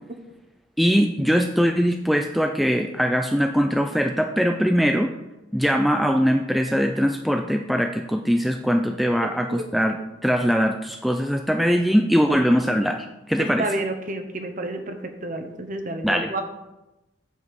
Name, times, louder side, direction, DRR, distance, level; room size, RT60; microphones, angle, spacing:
voice 1, 0.8-5.1 5.5-10.0 10.2-13.7 16.0-16.4, equal, ahead, 4 dB, 0.3 m, -21 dB
voice 2, 13.4-15.0 15.2-16.4, right 2 dB, 40° right, 6 dB, 1.0 m, -29 dB
8.0 x 7.2 x 4.8 m, 0.98 s
head